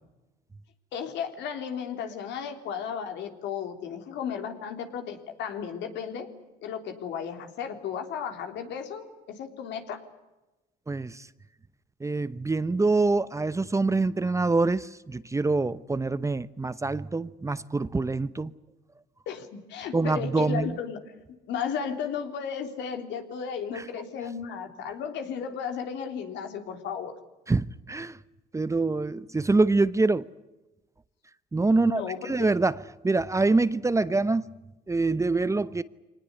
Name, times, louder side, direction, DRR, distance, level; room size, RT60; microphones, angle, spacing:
voice 1, 0.9-6.3 6.6-10.0 19.2-21.1 21.5-27.1 31.8-32.5, left 7 dB, 75° left, 3.6 m, -34 dB
voice 2, 10.9-11.2 12.0-18.5 19.9-20.7 23.7-23.8 27.5-28.2 28.5-30.3 31.5-34.4 34.9-35.8, right 3 dB, 15° right, 0.8 m, -25 dB
24.5 x 19.5 x 9.9 m
cardioid pair, 90°, 19 cm